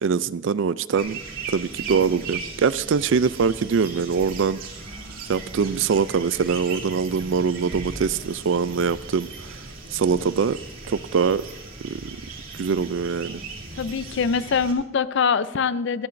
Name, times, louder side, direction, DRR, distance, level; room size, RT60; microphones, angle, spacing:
voice 1, 0.0-1.2 1.5-4.6 5.3-9.6 9.9-10.6 10.9-11.4 11.8-12.2 12.5-13.4, right 6 dB, 70° right, 0.4 m, -23 dB
sound 1, 1.0-14.7, right 3 dB, 90° right, 3.1 m, -37 dB
voice 2, 13.8-16.1, left 5 dB, 65° left, 0.5 m, -23 dB
24.5 x 8.7 x 2.6 m
head